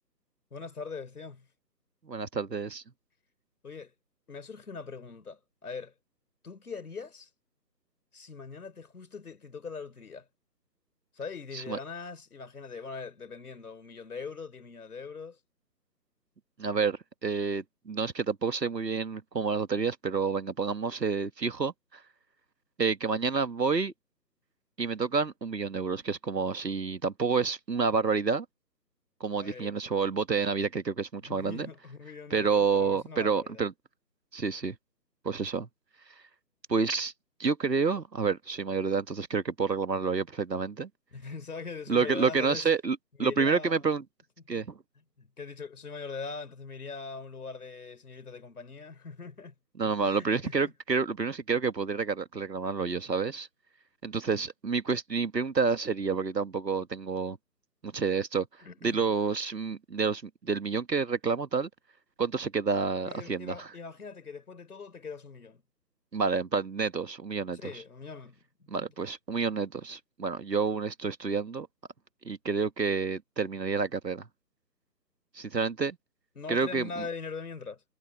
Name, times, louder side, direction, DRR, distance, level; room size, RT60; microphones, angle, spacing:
voice 1, 0.5-1.5 3.6-3.9 4.3-5.9 6.4-7.3 8.1-10.3 11.1-15.4 29.3-29.8 31.3-33.6 41.1-42.7 43.2-43.9 45.2-49.5 50.0-50.7 58.6-59.1 63.0-65.6 67.5-68.9 76.4-77.8, left 4 dB, 60° left, 3.8 m, -42 dB
voice 2, 2.1-2.8 11.5-11.8 16.6-22.0 22.8-23.9 24.8-28.5 29.2-31.7 32.3-33.7 34.3-34.8 35.2-35.7 36.7-37.1 37.4-40.9 41.9-44.0 44.5-44.8 49.8-53.5 54.0-57.4 57.8-58.5 58.8-61.7 62.2-63.7 66.1-67.6 68.7-71.7 72.3-74.3 75.4-76.0 76.5-77.0, right 5 dB, 80° right, 1.8 m, -29 dB
figure-of-eight pair, 155°, 49 cm